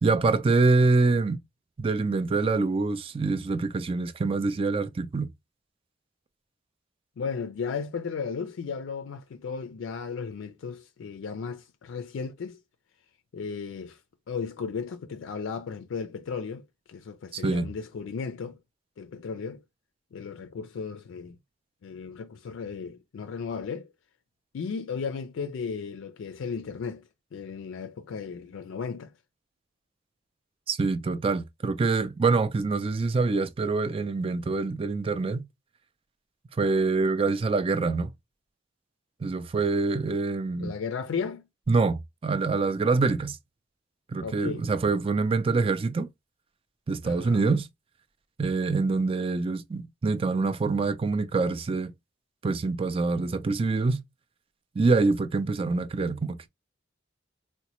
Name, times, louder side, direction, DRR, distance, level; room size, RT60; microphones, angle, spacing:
voice 1, 0.0-1.4 1.8-5.3 17.3-17.7 30.7-35.4 36.6-38.1 39.2-40.7 41.7-43.4 44.1-46.1 46.9-47.7 48.4-51.9 52.4-54.0 54.8-56.5, right 3 dB, 30° right, 0.3 m, -25 dB
voice 2, 7.2-12.6 13.3-14.0 14.3-18.6 19.0-19.6 20.1-21.4 21.8-23.9 24.5-29.1 40.6-41.5 44.2-44.7 47.0-47.4, left 5 dB, 75° left, 0.4 m, -35 dB
3.9 x 2.1 x 2.9 m
head